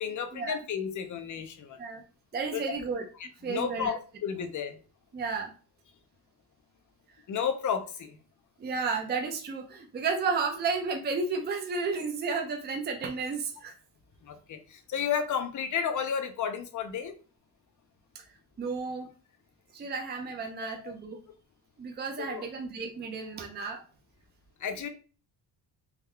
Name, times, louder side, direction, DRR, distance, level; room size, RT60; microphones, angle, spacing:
voice 1, 0.0-1.8 2.5-2.6 3.2-4.8 7.3-8.2 14.2-17.1 20.8-20.9 22.2-22.4 24.6-24.9, left 7 dB, 40° left, 8 dB, 0.5 m, -32 dB
voice 2, 2.3-3.0 3.4-4.0 5.1-5.5 8.6-13.8 18.1-18.2 18.6-19.1 19.7-21.2 21.8-23.8, right 4 dB, 25° right, 3 dB, 0.5 m, -32 dB
3.6 x 2.3 x 3.2 m, 0.37 s
cardioid pair, 145°, 45 cm